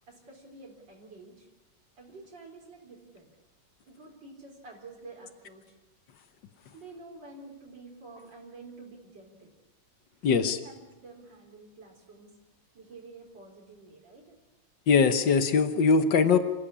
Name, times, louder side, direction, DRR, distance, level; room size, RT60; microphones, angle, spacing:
voice 1, 0.1-1.5 2.0-3.3 3.9-5.8 6.7-9.5 10.2-12.3 12.7-14.4, right 3 dB, 90° right, -1 dB, 4.8 m, -49 dB
voice 2, 10.2-10.6 14.9-16.4, left 5 dB, 85° left, 9 dB, 1.8 m, -21 dB
26.5 x 16.0 x 8.7 m, 1.1 s
omnidirectional pair, 1.9 m